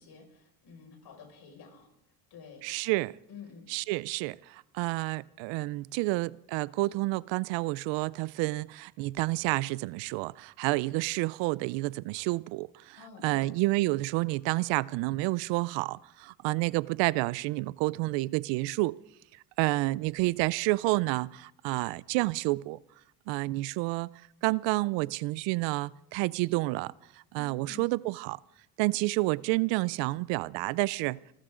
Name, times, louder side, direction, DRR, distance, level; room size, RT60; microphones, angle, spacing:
voice 1, 0.0-1.9 2.3-2.6 3.3-3.7 12.9-13.5 27.3-27.9, left 6 dB, 60° left, 5.8 m, -49 dB
voice 2, 2.6-3.1 3.7-13.0 13.2-19.0 19.6-22.8 23.3-24.1 24.4-26.9 27.3-28.4 28.8-31.2, right 22 dB, 85° right, 0.5 m, -29 dB
27.5 x 13.0 x 3.8 m
cardioid pair, 100°, 43 cm